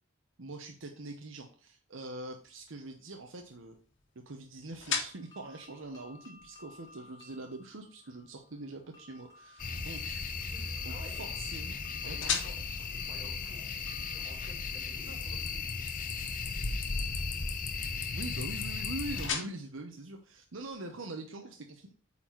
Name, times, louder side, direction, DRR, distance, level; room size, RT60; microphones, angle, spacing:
voice 1, 0.4-3.7 4.3-10.2 10.8-11.8 12.0-12.4 18.1-21.9, right 2 dB, 85° right, 4 dB, 0.9 m, -43 dB
sound 1, 2.2-21.0, left 6 dB, 75° left, 1.6 m, -44 dB
sound 2, 4.9-15.7, left 2 dB, 20° left, 1.3 m, -58 dB
sound 3, 9.6-19.3, left 4 dB, 45° left, 0.8 m, -36 dB
voice 2, 10.5-11.3 12.0-13.6 14.1-15.8, equal, 40° right, 0 dB, 3.9 m, -52 dB
8.5 x 4.3 x 4.5 m, 0.41 s
head